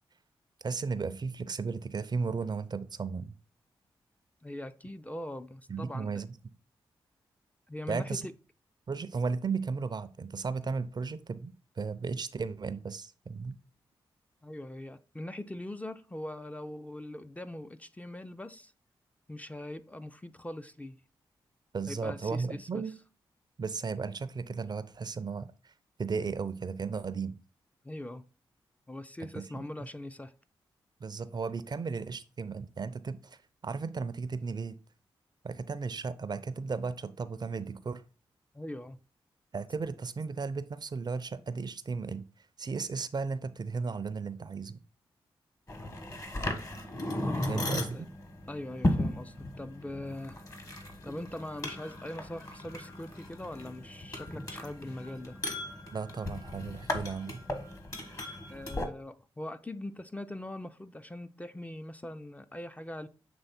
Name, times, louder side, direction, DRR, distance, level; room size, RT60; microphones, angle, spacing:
voice 1, 0.6-3.4 5.7-6.3 7.9-8.2 8.9-13.6 21.7-22.9 23.6-25.7 26.0-27.4 29.2-29.7 31.0-33.4 33.6-34.8 35.4-38.0 39.5-42.3 42.6-44.8 47.5-48.1 55.9-57.4, right 5 dB, 45° right, 0.5 m, -35 dB
voice 2, 4.4-6.1 7.7-8.3 14.4-18.7 19.3-21.0 21.9-22.8 27.8-28.2 28.9-30.3 38.5-39.0 47.3-47.7 47.9-48.1 48.5-50.4 51.0-55.4 58.5-63.1, left 1 dB, 15° left, 0.4 m, -41 dB
sound 1, 45.7-58.9, left 1 dB, 35° left, 1.2 m, -36 dB
7.0 x 3.1 x 4.2 m
cardioid pair, 50°, 10 cm